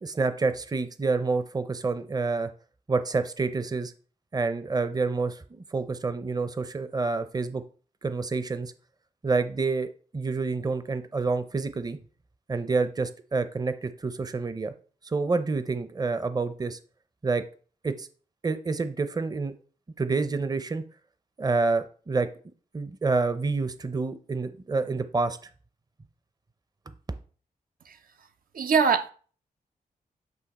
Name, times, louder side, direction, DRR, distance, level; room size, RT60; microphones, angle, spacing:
voice 1, 0.0-2.5 2.9-3.9 4.3-7.6 8.0-8.7 9.2-12.0 12.5-14.7 15.0-16.8 17.2-17.4 17.8-18.1 18.4-19.5 20.0-20.8 21.4-22.3 22.7-25.4, right 4 dB, 25° right, 0.6 m, -28 dB
voice 2, 28.5-29.1, right 6 dB, 70° right, 0.5 m, -22 dB
8.1 x 2.8 x 4.1 m
cardioid pair, 65°, 15 cm